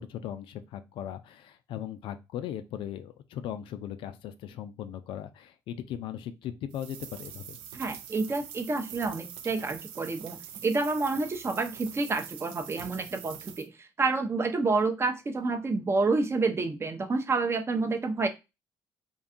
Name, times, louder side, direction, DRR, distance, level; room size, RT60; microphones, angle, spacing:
voice 1, 0.0-7.6, left 10 dB, 70° left, 10 dB, 0.4 m, -38 dB
sound 1, 6.7-13.7, right 9 dB, 85° right, 0.4 m, -44 dB
voice 2, 7.7-18.3, right 3 dB, 30° right, 7 dB, 0.5 m, -29 dB
2.6 x 2.3 x 2.5 m, 0.25 s
supercardioid pair, 70°, 9 cm